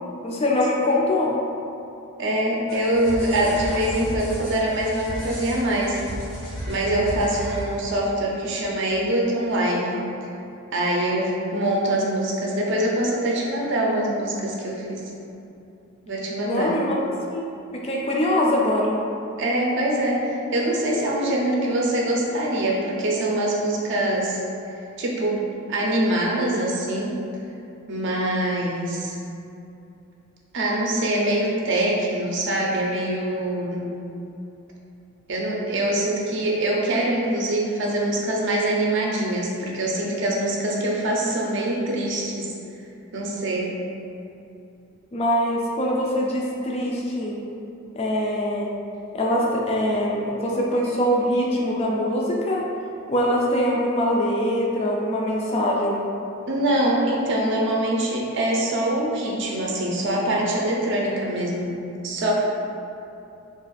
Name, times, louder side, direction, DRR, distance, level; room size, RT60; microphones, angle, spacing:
voice 1, 0.2-1.4 16.4-17.5 17.8-19.0 45.1-47.4 48.0-48.7 49.1-52.6 53.1-56.0, left 1 dB, 30° left, -2 dB, 0.3 m, -23 dB
voice 2, 2.2-6.0 6.7-10.0 10.7-15.0 16.1-16.8 19.4-24.4 25.0-25.4 25.7-27.2 27.9-29.2 30.5-34.0 35.3-42.5 43.1-43.7 56.5-61.8 62.0-62.3, right 1 dB, 55° right, -3 dB, 0.5 m, -24 dB
sound 1, 2.7-8.1, equal, 85° left, 1.1 m, -34 dB
2.4 x 2.3 x 4.0 m, 2.7 s
head